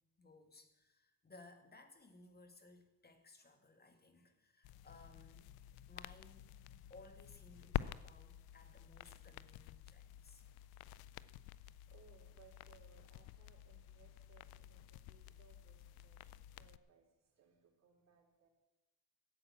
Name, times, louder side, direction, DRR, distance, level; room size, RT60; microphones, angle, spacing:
voice 1, 0.0-6.5 6.9-10.4, left 2 dB, 25° left, 7 dB, 2.1 m, -61 dB
sound 1, 4.6-16.8, left 14 dB, 70° left, 0.6 m, -49 dB
voice 2, 11.9-18.5, right 7 dB, 45° right, 0 dB, 3.8 m, -67 dB
13.5 x 8.5 x 7.2 m, 0.98 s
supercardioid pair, 95°, 38 cm